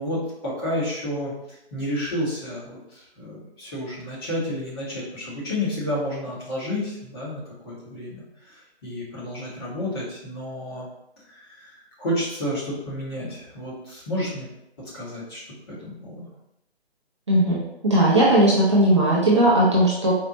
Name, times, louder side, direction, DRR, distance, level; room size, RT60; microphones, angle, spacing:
voice 1, 0.0-10.9 11.2-14.5 14.9-16.3, left 1 dB, 25° left, -7 dB, 1.0 m, -31 dB
voice 2, 17.8-20.1, right 1 dB, 30° right, -7 dB, 0.5 m, -17 dB
4.3 x 2.0 x 2.6 m, 0.81 s
figure-of-eight pair, 150°, 33 cm